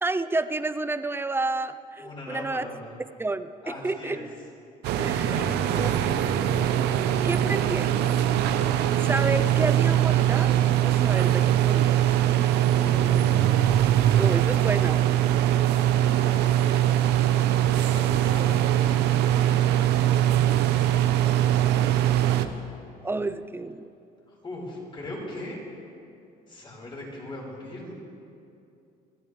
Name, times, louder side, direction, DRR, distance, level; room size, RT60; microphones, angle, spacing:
voice 1, 0.0-2.7 3.2-4.2 5.0-5.5 5.8-6.4 7.2-7.9 9.0-12.0 14.2-15.0 23.0-23.9, right 2 dB, 15° right, 12 dB, 0.5 m, -30 dB
voice 2, 2.0-2.8 3.6-4.2 5.3-6.4 12.8-13.5 16.0-16.6 17.4-22.3 24.3-25.6 26.5-27.9, left 1 dB, 30° left, -3 dB, 4.5 m, -41 dB
sound 1, 4.8-22.4, right 11 dB, 85° right, 0.8 m, -22 dB
26.5 x 12.0 x 3.2 m, 2.6 s
cardioid pair, 110°, 17 cm